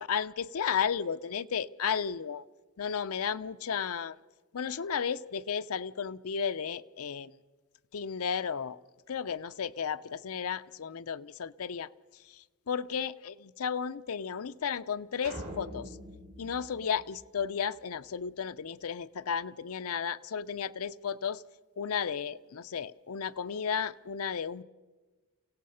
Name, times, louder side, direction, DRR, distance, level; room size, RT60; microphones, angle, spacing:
voice 1, 0.1-2.4 2.8-4.2 4.5-7.3 7.9-8.8 9.1-11.9 12.7-15.9 16.4-21.4 21.8-24.6, left 7 dB, 70° left, 0.6 m, -33 dB
sound 1, 15.2-17.7, right 1 dB, 85° right, 4.3 m, -44 dB
28.5 x 17.0 x 5.6 m
head